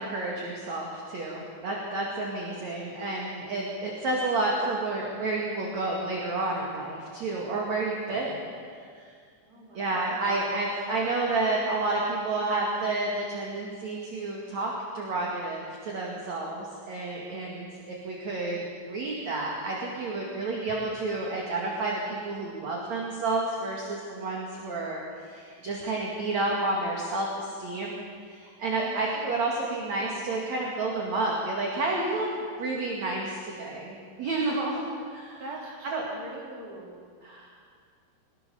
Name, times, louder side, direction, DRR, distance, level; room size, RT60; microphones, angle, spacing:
voice 1, 0.0-8.5 9.0-9.1 9.7-28.0 28.3-32.3 32.6-36.1 37.2-37.6, right 2 dB, 45° right, -2 dB, 2.8 m, -30 dB
voice 2, 9.4-10.2 28.7-29.1 35.4-37.0, right 1 dB, 20° right, -2 dB, 3.6 m, -43 dB
23.5 x 19.5 x 7.0 m, 2.1 s
omnidirectional pair, 5.6 m